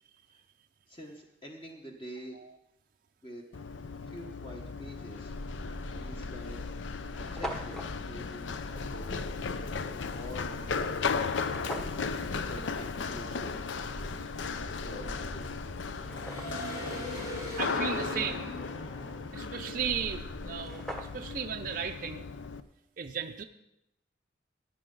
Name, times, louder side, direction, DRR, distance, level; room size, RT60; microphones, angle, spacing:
voice 1, 0.9-2.4 3.2-3.4 4.0-5.3 6.0-6.6 7.2-9.3 9.6-12.0 12.5-13.6 14.7-15.5, equal, 25° left, 0 dB, 1.1 m, -46 dB
Run, 3.5-22.6, left 5 dB, 75° left, 0.5 m, -36 dB
sound 1, 5.3-7.6 8.7-11.2 11.8-20.5, equal, 55° left, 4.2 m, -42 dB
sound 2, 5.6-5.8 6.5-6.6 6.8-6.9 7.1-7.9 11.4-12.0 15.0-15.1 15.6-16.8 20.1-20.2 20.4-21.4, right 1 dB, 5° left, 0.9 m, -41 dB
voice 2, 17.6-18.5 19.3-22.2 23.0-23.4, right 7 dB, 45° right, 5 dB, 0.4 m, -35 dB
15.0 x 9.8 x 3.8 m, 0.84 s
head